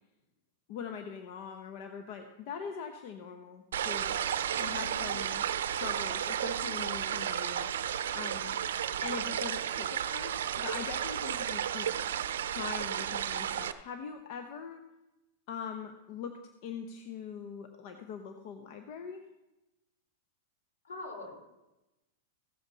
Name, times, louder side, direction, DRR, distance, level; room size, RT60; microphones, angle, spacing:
voice 1, 0.7-4.2 4.6-7.7 8.1-8.6 9.0-11.9 12.5-14.8 15.5-19.3, left 6 dB, 55° left, 6 dB, 0.9 m, -42 dB
sound 1, 3.7-13.7, right 9 dB, 80° right, 0.5 m, -33 dB
voice 2, 4.4-5.1 20.8-21.4, left 2 dB, 80° left, 2 dB, 3.2 m, -44 dB
15.5 x 7.3 x 4.1 m, 0.98 s
hypercardioid pair, 120°, 0 cm